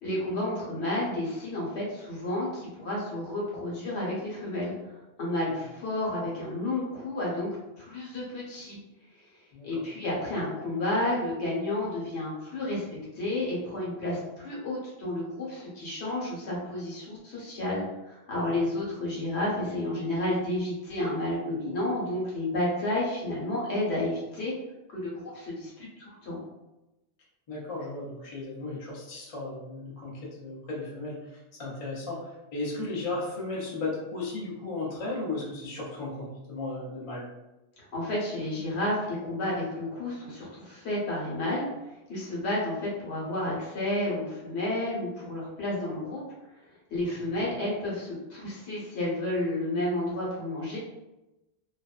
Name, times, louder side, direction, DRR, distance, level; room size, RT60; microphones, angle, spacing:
voice 1, 0.0-7.5 7.8-8.8 9.6-12.8 13.1-24.5 24.9-26.4 37.9-41.6 42.1-46.2 46.9-50.8, left 1 dB, 80° left, -5 dB, 1.1 m, -31 dB
voice 2, 27.5-37.3 47.3-47.4, left 2 dB, 40° left, -5 dB, 0.6 m, -35 dB
2.5 x 2.1 x 2.3 m, 0.99 s
omnidirectional pair, 1.1 m